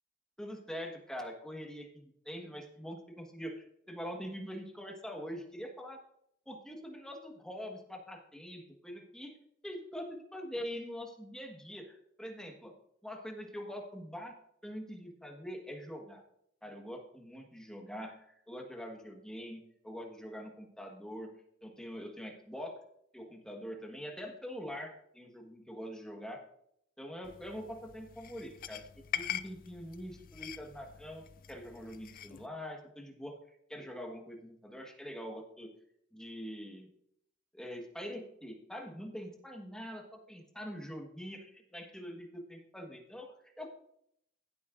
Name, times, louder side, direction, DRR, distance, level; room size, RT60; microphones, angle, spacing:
voice 1, 0.4-6.0 6.5-9.4 9.6-12.7 13.0-14.3 14.6-16.2 16.6-21.3 21.6-22.8 23.1-26.4 27.0-33.4 33.7-35.7 36.1-36.9 37.5-43.7, equal, 5° left, 2 dB, 1.4 m, -44 dB
sound 1, 27.2-32.5, left 10 dB, 45° left, 0.5 m, -43 dB
16.0 x 8.4 x 2.6 m, 0.72 s
head